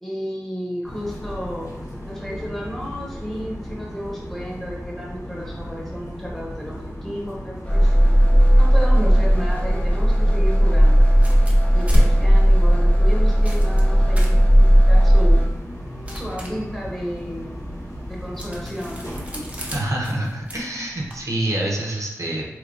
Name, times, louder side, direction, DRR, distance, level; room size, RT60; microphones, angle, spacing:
voice 1, 0.0-1.7 2.1-7.9 8.5-11.0 11.7-15.4 16.1-17.6 18.1-19.2, equal, 5° left, -5 dB, 1.1 m, -32 dB
sound 1, 0.8-19.8, equal, 70° left, 1.2 m, -36 dB
sound 2, 7.6-15.5, equal, 20° left, 0.6 m, -15 dB
sound 3, 11.1-21.2, equal, 20° right, 0.7 m, -29 dB
voice 2, 19.7-22.4, right 1 dB, 60° right, -2 dB, 0.6 m, -26 dB
3.3 x 2.9 x 2.4 m, 0.96 s
cardioid pair, 45°, 6 cm